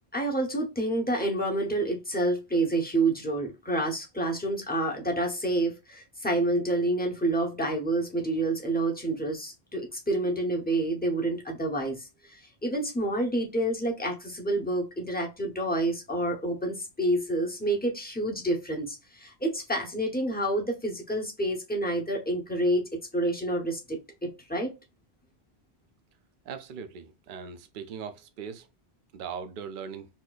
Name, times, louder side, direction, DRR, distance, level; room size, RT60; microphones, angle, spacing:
voice 1, 0.1-24.7, right 1 dB, 10° left, 0.7 m, -28 dB
voice 2, 26.5-28.7 29.1-30.1, right 6 dB, 60° right, 0.6 m, -39 dB
4.2 x 2.6 x 2.3 m
omnidirectional pair, 1.1 m